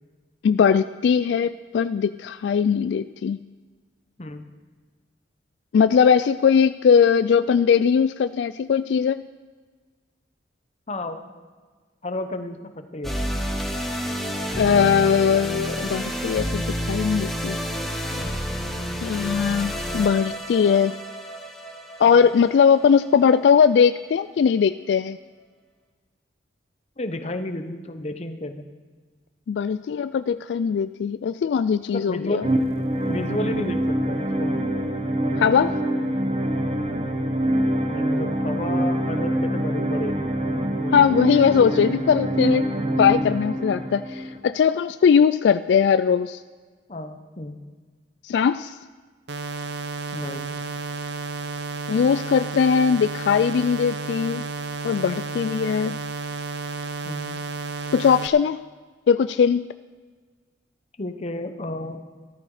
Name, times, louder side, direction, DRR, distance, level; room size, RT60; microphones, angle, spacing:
voice 1, 0.4-3.4 5.7-9.2 14.6-17.6 19.0-21.0 22.0-25.2 29.5-32.5 35.4-35.7 40.9-42.6 43.0-46.4 48.2-48.8 51.9-54.5 54.8-56.0 57.9-58.6 59.1-59.6, left 7 dB, 75° left, 13 dB, 0.3 m, -20 dB
voice 2, 10.9-11.2 12.0-13.2 27.0-28.7 31.9-32.4 33.1-34.5 37.9-40.3 40.8-41.1 46.9-47.6 50.1-50.6 57.0-57.4 61.0-62.0, left 1 dB, 35° left, 8 dB, 1.0 m, -32 dB
sound 1, 13.0-23.4, equal, ahead, 1.2 m, -30 dB
sound 2, 32.4-44.4, right 1 dB, 35° right, 1.0 m, -25 dB
sound 3, 49.3-58.3, right 4 dB, 70° right, 0.7 m, -32 dB
13.5 x 13.0 x 4.9 m, 1.5 s
head